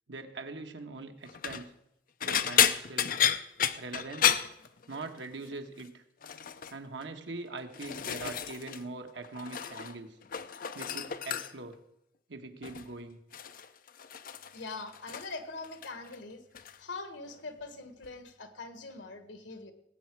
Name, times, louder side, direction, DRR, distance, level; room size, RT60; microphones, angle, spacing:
voice 1, 0.1-1.7 2.2-3.2 3.8-4.4 4.9-6.0 6.7-10.2 10.7-11.8 12.3-13.2, right 3 dB, 80° right, 6 dB, 1.3 m, -42 dB
sound 1, 1.3-1.6 2.2-5.3 5.5-5.9 6.2-6.7 7.4-8.8 9.1-10.0 10.2-11.7 12.6-12.9 13.3-15.4 15.6-16.2 16.5-16.8 18.0-18.1, left 9 dB, 50° left, 0.6 m, -31 dB
voice 2, 14.5-16.4 16.8-19.7, left 3 dB, 85° left, 8 dB, 1.6 m, -42 dB
18.5 x 8.5 x 4.6 m, 0.85 s
head